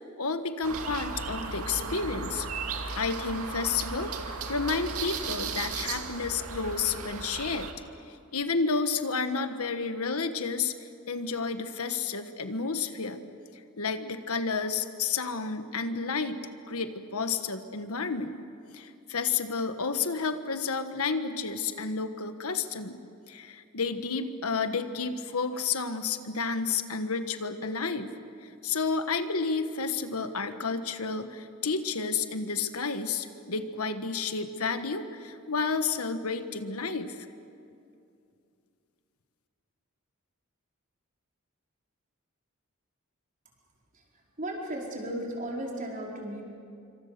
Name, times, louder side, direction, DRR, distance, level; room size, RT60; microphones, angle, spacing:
voice 1, 0.2-2.5 3.0-7.7 8.1-13.2 13.8-16.4 16.7-18.4 18.7-23.0 23.3-28.1 28.4-37.2, left 4 dB, 80° left, 9 dB, 1.4 m, -31 dB
sound 1, 0.6-7.7, right 4 dB, 85° right, 2.3 m, -36 dB
voice 2, 44.4-46.4, right 1 dB, 35° right, -2 dB, 4.9 m, -35 dB
27.0 x 25.0 x 6.8 m, 2.5 s
head